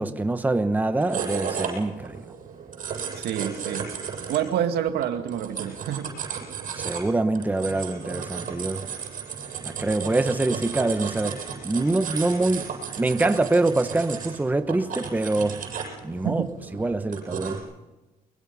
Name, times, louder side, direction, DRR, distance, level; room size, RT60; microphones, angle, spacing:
voice 1, 0.0-2.2 6.7-8.8 9.6-11.4 11.6-12.7 13.0-15.6 16.0-16.4 16.7-17.6, right 2 dB, 10° right, 9 dB, 1.0 m, -25 dB
sound 1, 0.8-17.6, right 6 dB, 50° right, 7.8 m, -34 dB
voice 2, 3.2-3.9 4.3-6.1 16.2-16.5, right 10 dB, 75° right, 6 dB, 2.1 m, -27 dB
23.0 x 22.5 x 5.5 m, 1.1 s
cardioid pair, 110°, 17 cm